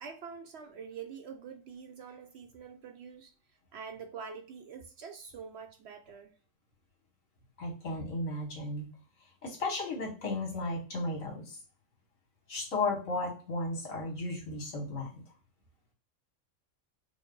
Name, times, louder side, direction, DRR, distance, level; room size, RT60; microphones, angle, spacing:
voice 1, 0.0-3.3 3.7-6.4, right 6 dB, 65° right, 0.7 m, -45 dB
voice 2, 7.6-8.9 9.4-11.6 12.5-15.2, left 2 dB, 75° left, 1.9 m, -34 dB
4.7 x 2.1 x 3.8 m
omnidirectional pair, 1.4 m